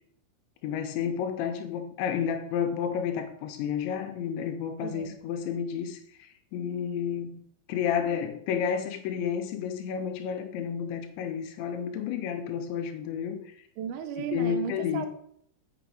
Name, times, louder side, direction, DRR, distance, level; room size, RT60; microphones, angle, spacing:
voice 1, 0.6-7.4 7.7-13.4 14.2-15.1, left 8 dB, 85° left, 6 dB, 3.1 m, -31 dB
voice 2, 4.8-5.1 13.8-15.1, right 8 dB, 90° right, 7 dB, 3.2 m, -35 dB
7.1 x 6.0 x 6.3 m, 0.69 s
omnidirectional pair, 5.3 m